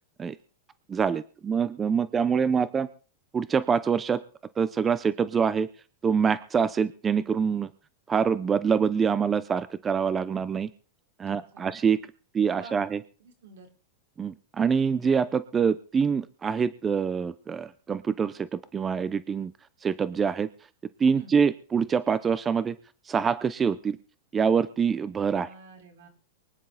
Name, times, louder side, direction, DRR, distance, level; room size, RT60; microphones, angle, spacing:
voice 1, 0.9-2.9 3.3-4.2 4.6-5.7 6.0-7.7 8.1-10.7 11.2-12.0 12.3-13.0 14.2-19.5 19.8-20.5 21.0-22.8 23.1-24.0 24.3-25.5, right 6 dB, 20° right, 15 dB, 0.7 m, -25 dB
voice 2, 11.2-11.7 12.6-12.9 13.2-13.7 21.1-21.4 25.4-26.1, right 4 dB, 80° right, 4 dB, 4.4 m, -49 dB
24.0 x 10.0 x 4.1 m, 0.39 s
supercardioid pair, 145°, 0 cm